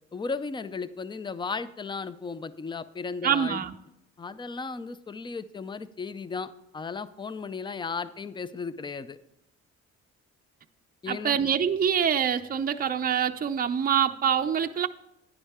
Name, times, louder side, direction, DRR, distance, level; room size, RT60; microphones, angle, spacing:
voice 1, 0.1-3.6 4.2-9.2 11.0-11.4, left 4 dB, 15° left, 15 dB, 0.5 m, -35 dB
voice 2, 3.2-3.7 11.1-14.9, right 8 dB, 30° right, 7 dB, 0.5 m, -25 dB
10.0 x 10.0 x 3.5 m, 0.84 s
cardioid pair, 90°, 30 cm